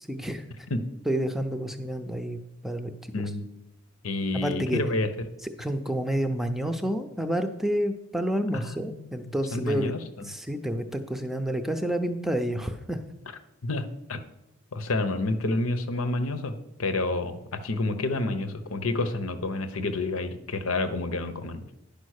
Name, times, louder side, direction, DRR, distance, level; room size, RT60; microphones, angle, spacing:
voice 1, 0.1-0.4 1.1-2.9 4.3-4.8 5.4-9.9 10.2-13.0, equal, ahead, 7 dB, 0.5 m, -29 dB
voice 2, 3.1-3.5 4.0-5.1 8.5-9.1 9.5-10.3 13.6-13.8 14.1-14.2 14.7-21.6, left 2 dB, 90° left, 10 dB, 0.9 m, -29 dB
10.5 x 5.2 x 6.5 m, 0.86 s
head